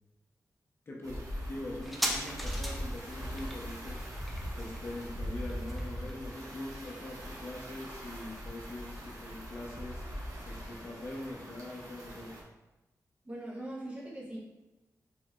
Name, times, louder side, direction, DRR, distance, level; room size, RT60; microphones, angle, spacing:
voice 1, 0.9-4.1 4.6-10.0 10.4-12.4, left 2 dB, 40° left, -3 dB, 0.7 m, -43 dB
sound 1, 1.0-12.4, equal, 75° right, 1.1 m, -41 dB
sound 2, 1.8-8.9 9.2-9.3, equal, ahead, 0.5 m, -41 dB
voice 2, 13.2-14.4, right 1 dB, 20° right, -5 dB, 1.1 m, -41 dB
4.6 x 3.8 x 2.4 m, 1.0 s
wide cardioid pair, 170°, 6 cm